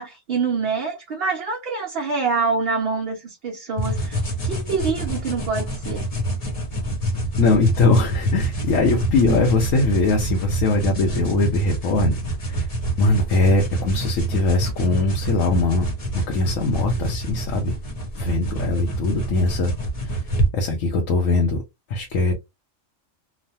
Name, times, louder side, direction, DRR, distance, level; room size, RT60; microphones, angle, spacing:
voice 1, 0.0-6.1, right 4 dB, 60° right, 0.8 m, -26 dB
sound 1, 3.8-20.5, right 1 dB, 35° left, 0.8 m, -26 dB
voice 2, 7.4-12.2 12.5-12.7 13.0-15.8 16.3-17.7 18.2-19.7 20.0-20.1 20.5-21.6 21.9-22.3, left 3 dB, 85° left, 1.0 m, -21 dB
3.1 x 2.1 x 2.7 m
omnidirectional pair, 1.3 m